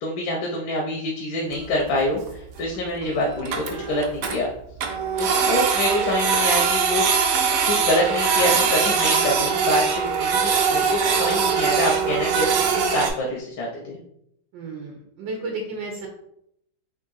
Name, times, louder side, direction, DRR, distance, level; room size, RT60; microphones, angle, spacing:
voice 1, 0.0-4.5 5.2-7.1 7.7-12.5 12.7-14.0, left 1 dB, 85° left, -1 dB, 1.4 m, -26 dB
Printer, 1.5-1.8 2.3-2.4 2.6-2.7 3.0-3.1 3.3-4.4 4.8-13.1, right 6 dB, 70° right, 1.1 m, -22 dB
voice 2, 14.5-16.1, right 3 dB, 85° right, 1 dB, 1.4 m, -32 dB
3.7 x 2.6 x 3.9 m, 0.76 s
omnidirectional pair, 2.0 m